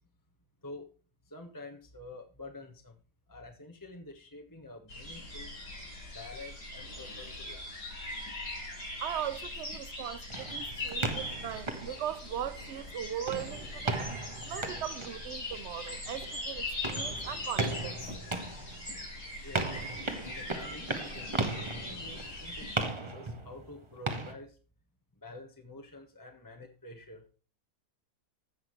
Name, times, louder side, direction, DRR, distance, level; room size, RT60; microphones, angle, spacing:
voice 1, 1.3-2.9 3.3-5.5 6.1-7.7 19.4-19.9 20.2-24.5 25.2-27.3, left 2 dB, 15° left, 1.0 m, -48 dB
sound 1, 4.9-22.8, left 2 dB, 70° left, 5.0 m, -41 dB
voice 2, 9.0-14.1 14.4-18.0, right 10 dB, 60° right, 0.8 m, -39 dB
sound 2, 10.3-12.8 13.2-24.3, right 2 dB, 20° right, 1.0 m, -37 dB
15.0 x 6.0 x 3.1 m
omnidirectional pair, 1.8 m